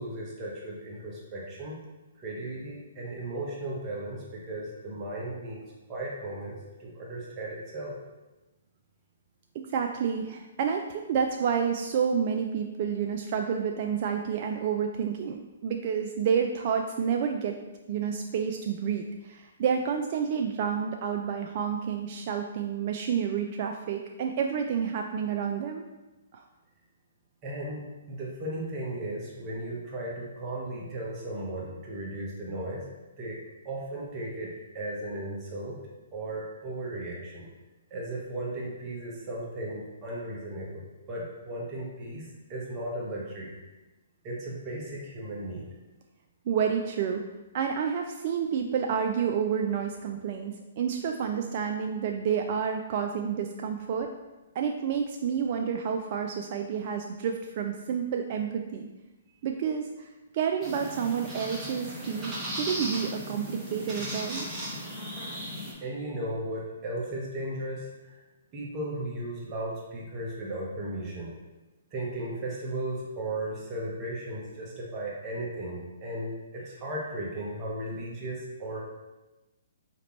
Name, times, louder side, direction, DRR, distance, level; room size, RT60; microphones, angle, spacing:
voice 1, 0.0-1.8 2.2-5.6 5.9-6.5 6.8-7.9 27.4-32.8 33.2-33.4 33.6-35.8 36.1-37.5 37.9-43.5 44.2-45.7 65.8-68.1 68.5-71.3 71.9-78.9, right 1 dB, 30° right, -4 dB, 1.1 m, -36 dB
voice 2, 9.5-17.6 17.9-25.8 26.3-26.4 46.5-47.2 47.5-54.1 54.6-58.9 59.4-60.1 60.3-64.5, right 7 dB, 45° right, 3 dB, 0.3 m, -29 dB
sound 1, 60.6-65.7, equal, 15° right, 1.4 m, -36 dB
4.9 x 2.9 x 3.1 m, 1.1 s
hypercardioid pair, 130°, 0 cm